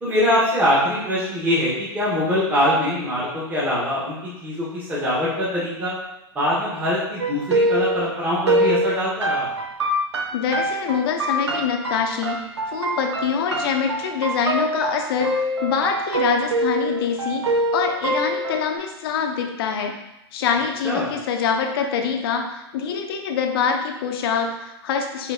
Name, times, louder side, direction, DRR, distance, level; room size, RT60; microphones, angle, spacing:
voice 1, 0.0-5.9 6.3-9.5 20.8-21.1, left 1 dB, 15° right, -9 dB, 1.3 m, -23 dB
sound 1, 7.2-18.8, right 1 dB, 90° right, 0.7 m, -24 dB
voice 2, 10.3-19.9 20.3-25.3, left 6 dB, 60° left, 4 dB, 0.7 m, -25 dB
4.3 x 3.5 x 2.7 m, 0.91 s
hypercardioid pair, 110°, 14 cm